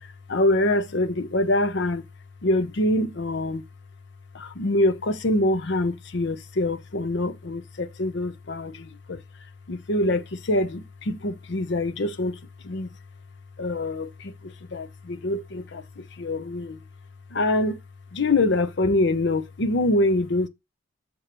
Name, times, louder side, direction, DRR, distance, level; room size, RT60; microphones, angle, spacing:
voice 1, 0.3-2.0 2.4-3.6 4.3-9.2 9.7-12.4 12.6-12.9 13.6-16.8 17.3-17.8 18.1-20.5, left 1 dB, 60° left, 0.7 m, -25 dB
6.8 x 3.8 x 4.4 m
head